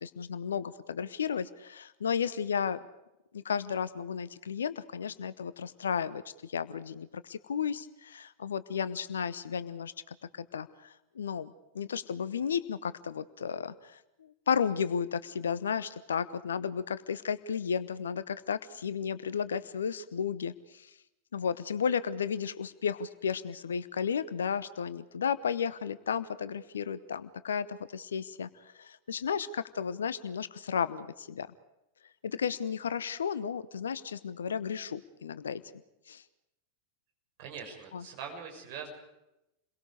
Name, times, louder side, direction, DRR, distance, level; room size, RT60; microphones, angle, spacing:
voice 1, 0.0-2.8 3.3-10.1 10.5-14.0 14.5-20.9 21.3-28.5 28.7-31.5 32.2-35.6 36.1-36.2 37.9-38.0, left 7 dB, 65° left, 15 dB, 1.0 m, -33 dB
voice 2, 37.4-38.9, right 6 dB, 45° right, 3 dB, 6.9 m, -42 dB
29.5 x 22.5 x 5.0 m, 0.89 s
figure-of-eight pair, 90°, 0 cm